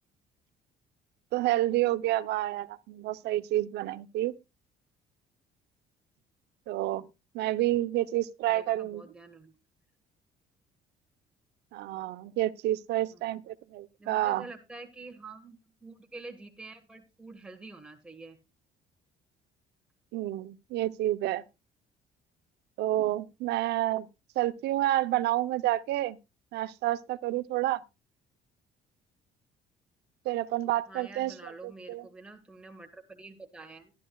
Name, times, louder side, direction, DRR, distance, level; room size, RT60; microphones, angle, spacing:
voice 1, 1.3-4.3 6.7-7.0 7.3-9.0 11.7-14.5 20.1-21.4 22.8-24.1 24.4-26.2 26.5-27.8 30.2-32.0, right 15 dB, 80° right, 0.8 m, -29 dB
voice 2, 8.5-9.5 13.1-13.3 14.0-18.4 30.9-33.9, right 3 dB, 5° right, 1.5 m, -47 dB
14.0 x 12.0 x 2.3 m
cardioid pair, 110°, 17 cm